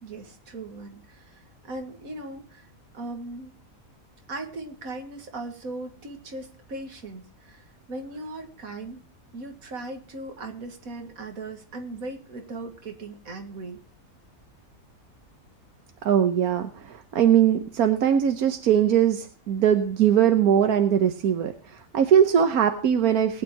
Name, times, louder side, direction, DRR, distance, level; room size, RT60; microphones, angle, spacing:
voice 1, 0.0-2.7 2.9-3.5 4.3-9.0 9.3-13.8, right 2 dB, 70° right, 5 dB, 2.3 m, -38 dB
voice 2, 16.0-23.4, right 9 dB, 90° right, 7 dB, 1.5 m, -21 dB
20.5 x 9.2 x 2.9 m, 0.38 s
omnidirectional pair, 1.5 m